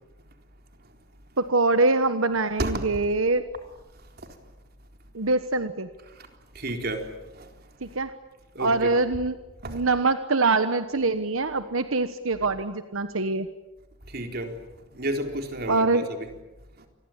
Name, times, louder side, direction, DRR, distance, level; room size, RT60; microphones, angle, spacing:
voice 1, 1.4-3.4 5.1-5.9 7.8-8.1 8.6-9.3 9.6-13.5 15.7-16.0, right 3 dB, 90° right, 10 dB, 1.3 m, -24 dB
voice 2, 6.5-7.5 8.5-8.9 9.6-9.8 12.4-12.5 14.1-14.6 14.9-16.3 16.8-16.9, right 1 dB, 50° right, 5 dB, 4.0 m, -32 dB
28.0 x 22.0 x 8.9 m, 1.1 s
head